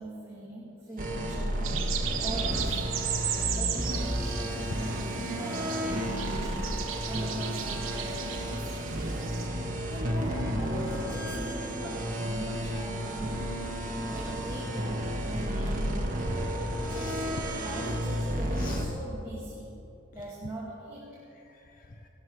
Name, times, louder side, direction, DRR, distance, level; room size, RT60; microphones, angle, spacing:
voice 1, 0.0-1.8 2.2-2.9 3.6-8.8 9.9-13.4 14.1-16.3 16.8-17.3 17.6-19.7 20.1-21.2, right 1 dB, 15° right, -8 dB, 2.4 m, -40 dB
sound 1, 1.0-18.9, equal, 45° right, 1.6 m, -32 dB
sound 2, 1.6-9.5, right 9 dB, 85° right, 1.2 m, -36 dB
voice 2, 3.0-3.6 4.1-4.3 4.7-5.5 6.0-6.4 14.7-14.8 16.8-17.2 17.5-17.7 18.5-18.9 20.2-20.3 21.3-22.1, left 2 dB, 45° left, 5 dB, 0.6 m, -46 dB
17.0 x 13.0 x 4.8 m, 2.8 s
head